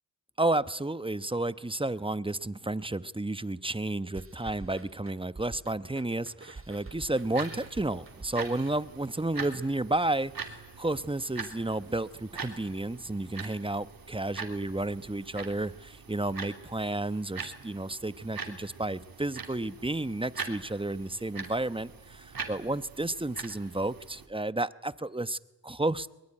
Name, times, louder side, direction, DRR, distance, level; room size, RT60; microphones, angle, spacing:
voice 1, 0.4-26.1, right 2 dB, 15° right, 15 dB, 1.0 m, -32 dB
sound 1, 4.2-9.1, right 3 dB, 35° right, 2.3 m, -48 dB
sound 2, 7.1-24.3, right 5 dB, 70° right, 3.3 m, -43 dB
23.0 x 22.0 x 10.0 m, 0.96 s
cardioid pair, 50°, 37 cm